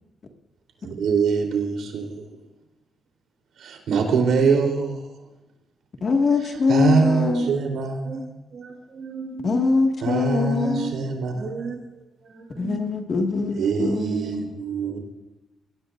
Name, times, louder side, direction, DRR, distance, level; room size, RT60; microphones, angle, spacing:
voice 1, 0.8-2.2 3.6-5.1 6.7-8.1 10.0-11.5 13.6-15.0, right 5 dB, 80° right, 3 dB, 3.6 m, -23 dB
voice 2, 6.0-7.5 9.4-10.9 12.6-14.1, left 4 dB, 40° left, 3 dB, 1.9 m, -22 dB
voice 3, 7.3-7.7 8.0-8.2 8.5-9.6 10.5-13.0 13.9-14.5, right 4 dB, 40° right, 1 dB, 6.3 m, -35 dB
21.5 x 17.5 x 2.6 m, 1.0 s
wide cardioid pair, 155°, 0 cm